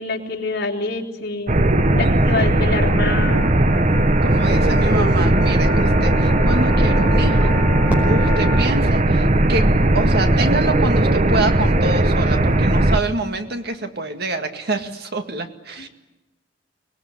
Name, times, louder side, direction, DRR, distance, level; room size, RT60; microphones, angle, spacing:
voice 1, 0.0-1.6 2.0-3.5 15.8-15.9, left 3 dB, 60° left, 0 dB, 3.7 m, -26 dB
sound 1, 1.5-13.0, right 1 dB, 40° right, 1.1 m, -17 dB
voice 2, 2.0-2.6 4.2-7.5 8.1-15.9, right 2 dB, 60° right, 7 dB, 2.1 m, -26 dB
sound 2, 3.1-8.7, left 4 dB, 75° right, 6.0 m, -32 dB
Fireworks, 7.9-10.1, equal, 10° right, 5.4 m, -31 dB
24.5 x 19.5 x 9.8 m, 1.1 s
head